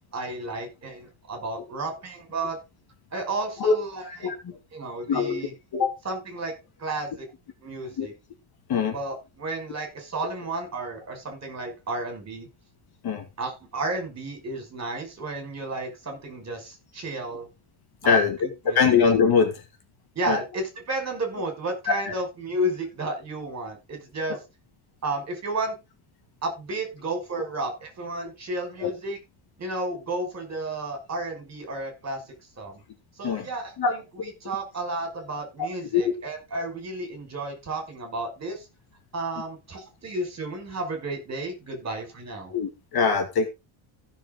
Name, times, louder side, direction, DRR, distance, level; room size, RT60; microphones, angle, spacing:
voice 1, 0.1-2.6 3.1-4.2 4.7-5.5 6.0-6.5 6.8-7.2 7.6-8.1 8.9-12.5 13.4-17.5 18.0-18.3 18.7-19.0 20.2-24.4 25.0-25.8 26.4-29.2 29.6-32.2 32.6-32.8 33.2-38.7 39.1-42.5, right 2 dB, 30° right, 4 dB, 5.5 m, -32 dB
voice 2, 4.2-4.6 5.1-5.4 5.7-6.0 8.0-8.1 8.7-8.9 13.0-13.2 18.0-18.4 18.6-19.6 20.3-20.4 21.9-22.1 24.3-24.4 28.8-28.9 33.2-33.5 33.8-33.9 35.9-36.1 42.5-43.5, left 6 dB, 50° left, 6 dB, 2.4 m, -22 dB
15.5 x 7.0 x 3.9 m, 0.26 s
cardioid pair, 175°, 50 cm